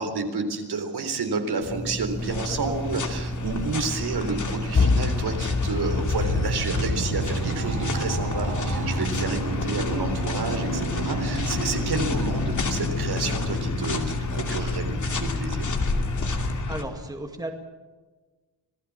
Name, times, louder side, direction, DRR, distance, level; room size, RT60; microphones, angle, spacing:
voice 1, 0.0-15.7, right 4 dB, 70° right, 6 dB, 3.9 m, -30 dB
sound 1, 1.6-16.6, equal, 15° left, 2.3 m, -32 dB
sound 2, 2.2-16.8, left 4 dB, 50° left, 2.6 m, -28 dB
sound 3, 6.0-12.2, right 7 dB, 50° right, 1.0 m, -34 dB
voice 2, 16.7-17.5, right 1 dB, 10° right, 4 dB, 2.1 m, -35 dB
26.5 x 18.0 x 7.4 m, 1.3 s
wide cardioid pair, 155°, 40 cm